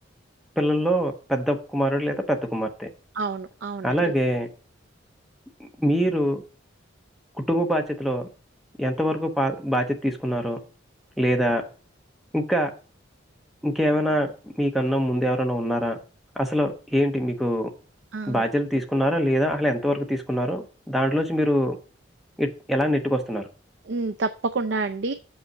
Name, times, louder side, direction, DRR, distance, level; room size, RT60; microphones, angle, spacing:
voice 1, 0.6-2.9 3.8-4.5 5.6-6.4 7.4-8.3 8.8-10.6 11.2-11.6 12.3-12.7 13.6-16.0 16.4-17.7 18.3-21.8 22.4-23.4, equal, ahead, 4 dB, 1.0 m, -24 dB
voice 2, 3.1-4.0 18.1-18.4 23.9-25.1, right 3 dB, 65° right, 8 dB, 0.5 m, -28 dB
6.9 x 5.5 x 6.2 m, 0.36 s
head